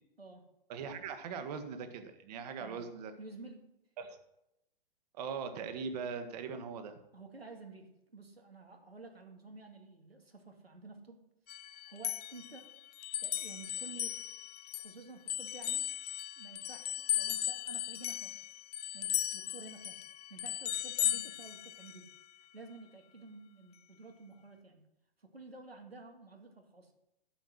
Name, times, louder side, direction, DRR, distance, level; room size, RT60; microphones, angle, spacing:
voice 1, 0.7-3.1 4.0-4.2 5.1-7.0, right 6 dB, 45° right, 8 dB, 1.7 m, -40 dB
voice 2, 3.2-3.7 7.1-11.2 11.7-12.7 13.2-14.2 14.7-15.9 16.4-18.4 18.9-20.0 20.3-22.1 22.5-24.8 25.2-26.9, right 3 dB, 90° right, 3 dB, 2.1 m, -51 dB
sound 1, 11.5-14.9 15.3-22.2, left 12 dB, 40° left, 0.5 m, -37 dB
12.0 x 8.0 x 6.3 m, 0.85 s
figure-of-eight pair, 115°, 29 cm